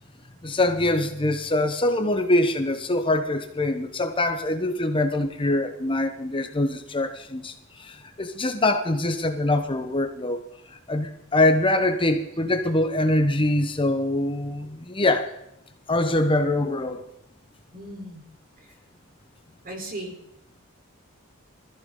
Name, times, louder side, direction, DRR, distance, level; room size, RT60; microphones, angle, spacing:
voice 1, 0.4-10.4 10.7-15.3 15.9-17.0, left 1 dB, 25° left, 6 dB, 1.1 m, -24 dB
voice 2, 17.7-18.2 19.6-20.2, right 1 dB, 45° right, 1 dB, 4.1 m, -36 dB
20.5 x 14.5 x 3.9 m, 0.82 s
head